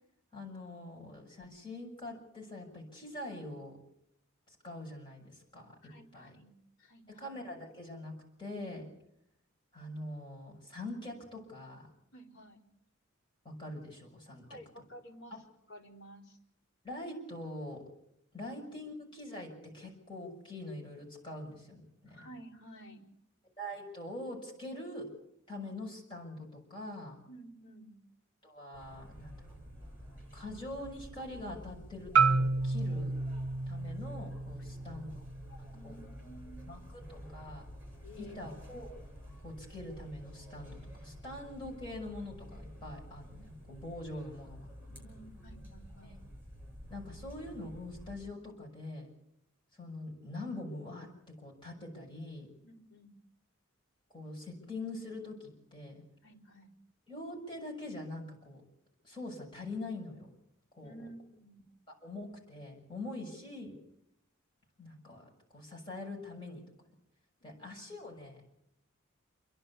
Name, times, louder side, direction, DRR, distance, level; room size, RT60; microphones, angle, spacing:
voice 1, 0.3-3.8 4.5-5.8 6.1-6.4 7.2-8.1 8.4-8.8 9.7-11.9 13.4-14.4 15.3-15.4 16.8-17.8 18.3-22.3 23.6-25.1 25.5-27.1 28.4-29.5 30.3-33.1 33.7-35.3 35.6-36.0 36.7-37.6 38.2-38.9 39.4-44.7 46.0-46.2 46.9-49.1 49.8-52.5 54.1-56.0 57.1-58.6 59.0-60.3 60.7-61.1 61.9-63.8 64.8-66.6 67.4-68.4, left 1 dB, 25° left, -2 dB, 6.9 m, -44 dB
voice 2, 5.8-6.5 6.8-7.3 12.1-12.6 14.5-15.4 15.7-16.4 18.5-18.6 22.1-23.0 27.3-27.9 34.6-35.0 35.7-36.8 38.0-38.5 44.9-46.2 52.6-53.1 56.2-56.7 60.8-61.7 67.4-67.5, right 1 dB, 55° left, -4 dB, 4.6 m, -53 dB
sound 1, 28.7-48.2, equal, 10° right, 7.9 m, -50 dB
Marimba xylophone, 32.2-36.3, right 4 dB, 70° right, 0.8 m, -31 dB
29.0 x 11.5 x 8.4 m, 0.79 s
head